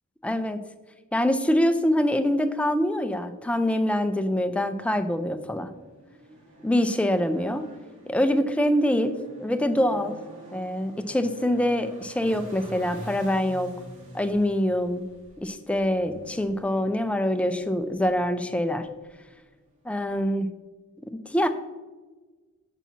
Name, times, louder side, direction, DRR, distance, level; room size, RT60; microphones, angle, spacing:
voice 1, 0.2-0.6 1.1-5.7 6.6-7.7 8.1-10.2 10.5-13.7 14.1-15.0 15.4-18.9 19.9-20.5 21.1-21.5, left 1 dB, 5° left, 8 dB, 0.3 m, -25 dB
sound 1, 4.0-20.4, equal, 60° right, 1.3 m, -47 dB
7.2 x 5.7 x 2.7 m, 1.3 s
head